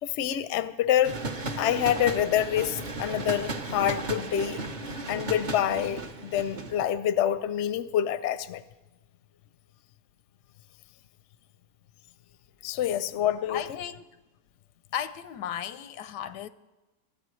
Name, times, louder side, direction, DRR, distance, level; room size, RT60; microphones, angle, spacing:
voice 1, 0.0-1.2 1.6-4.6 5.1-8.6 12.6-13.8, left 10 dB, 60° left, 0.8 m, -27 dB
sound 1, 1.0-6.8, right 2 dB, 35° right, 0.8 m, -35 dB
voice 2, 13.5-14.0 14.9-16.5, left 9 dB, 85° left, 1.2 m, -35 dB
24.5 x 13.5 x 3.2 m
omnidirectional pair, 1.8 m